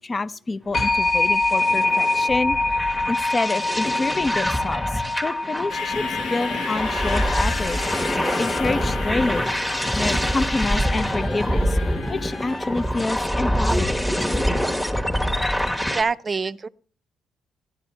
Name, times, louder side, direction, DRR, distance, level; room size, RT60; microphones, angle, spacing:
voice 1, 0.0-2.8 3.1-11.8 12.1-14.2, left 3 dB, 30° left, 0.6 m, -28 dB
sound 1, 0.7-11.4, left 2 dB, 45° left, 1.2 m, -26 dB
sound 2, 0.8-16.0, equal, 10° left, 1.3 m, -25 dB
sound 3, 5.7-13.3, left 5 dB, 70° left, 1.2 m, -34 dB
voice 2, 15.9-16.7, right 4 dB, 35° right, 0.5 m, -25 dB
13.0 x 11.0 x 4.4 m
cardioid pair, 90°, 0 cm